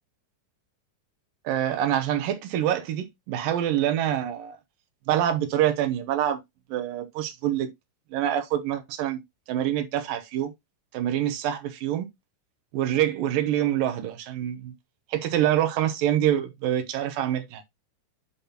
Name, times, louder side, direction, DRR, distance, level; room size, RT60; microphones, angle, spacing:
voice 1, 1.4-4.6 5.1-6.4 6.7-7.7 8.1-9.2 9.5-10.5 10.9-12.1 12.7-14.7 15.1-17.6, right 11 dB, 80° right, 2.7 m, -26 dB
10.5 x 5.7 x 2.9 m
omnidirectional pair, 3.9 m